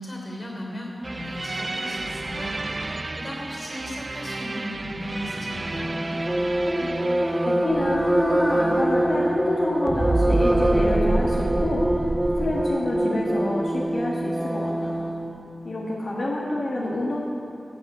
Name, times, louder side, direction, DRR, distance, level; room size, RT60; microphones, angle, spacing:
voice 1, 0.0-6.0, equal, 35° left, -1 dB, 3.2 m, -36 dB
sound 1, 1.0-9.6 9.9-12.7, right 2 dB, 40° right, 0.3 m, -30 dB
sound 2, 5.7-15.3, right 1 dB, 15° right, 1.3 m, -24 dB
voice 2, 7.4-12.0 12.4-15.0 15.6-17.2, left 1 dB, 70° left, -5 dB, 1.4 m, -27 dB
16.0 x 6.1 x 6.0 m, 2.6 s
wide cardioid pair, 60°, 0 cm